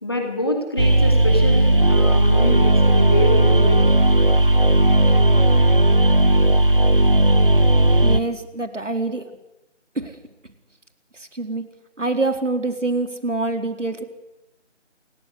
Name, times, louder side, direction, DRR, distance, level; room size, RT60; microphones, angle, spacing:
voice 1, 0.0-3.9, left 1 dB, 20° left, 3 dB, 2.6 m, -26 dB
sound 1, 0.8-8.2, right 1 dB, 45° right, 1.1 m, -15 dB
voice 2, 8.0-9.2 10.0-10.2 11.1-11.6 12.0-14.0, right 2 dB, 70° right, 7 dB, 4.3 m, -25 dB
27.5 x 19.5 x 9.9 m, 0.97 s
figure-of-eight pair, 175°, 37 cm